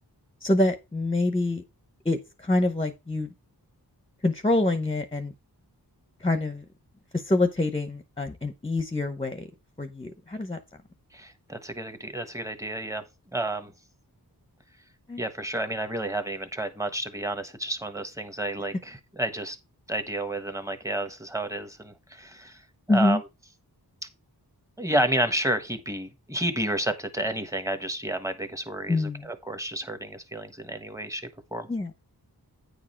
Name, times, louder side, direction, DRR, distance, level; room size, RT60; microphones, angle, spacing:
voice 1, 0.4-1.6 2.0-3.3 4.2-5.3 6.2-6.6 7.1-9.5 9.8-10.6 15.1-15.2 22.9-23.2 28.9-29.3 31.7-31.9, left 2 dB, 15° left, 0.8 m, -26 dB
voice 2, 11.1-13.0 13.3-13.7 15.2-19.6 19.9-22.6 22.9-23.2 24.8-31.7, right 1 dB, 10° right, 1.2 m, -31 dB
9.3 x 4.9 x 4.4 m
wide cardioid pair, 70°, 39 cm